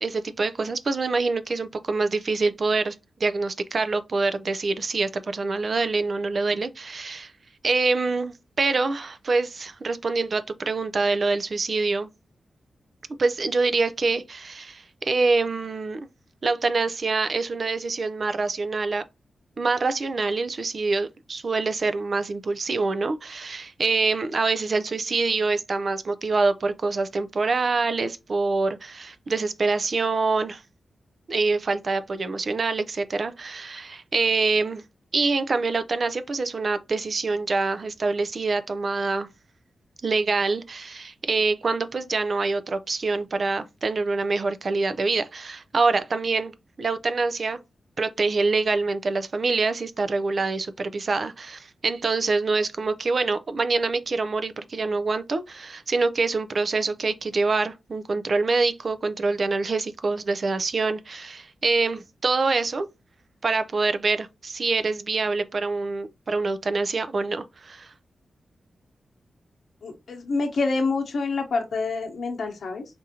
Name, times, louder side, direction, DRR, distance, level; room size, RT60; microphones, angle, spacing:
voice 1, 0.0-3.0 3.2-7.3 7.6-12.1 13.2-16.1 16.4-19.0 19.6-30.6 31.3-34.8 35.1-39.3 40.0-46.5 46.8-47.6 48.0-62.9 63.4-67.9, right 3 dB, 40° right, 0.4 m, -25 dB
voice 2, 69.8-72.9, left 3 dB, 55° left, 1.0 m, -27 dB
4.8 x 2.6 x 2.7 m
wide cardioid pair, 175°, 0 cm